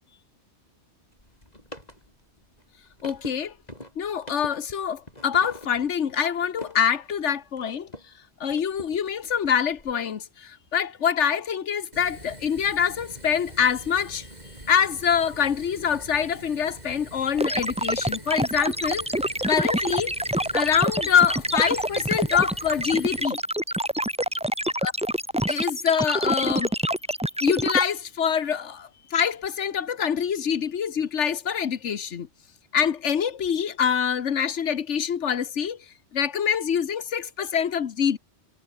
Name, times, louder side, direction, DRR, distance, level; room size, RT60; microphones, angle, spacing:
sound 1, 1.1-8.2 8.5-9.9, left 1 dB, 35° left, 8.2 m, -45 dB
voice 1, 3.0-3.5 4.0-7.9 8.4-14.3 14.7-19.1 19.5-20.1 20.5-23.4 24.8-24.9 25.5-26.7 27.4-32.3 32.7-35.8 36.1-38.2, left 7 dB, 85° left, 1.4 m, -25 dB
Fire, 11.9-23.3, right 1 dB, 35° right, 7.7 m, -44 dB
sound 2, 17.4-27.8, right 1 dB, 5° right, 1.2 m, -26 dB
omnidirectional pair, 1.2 m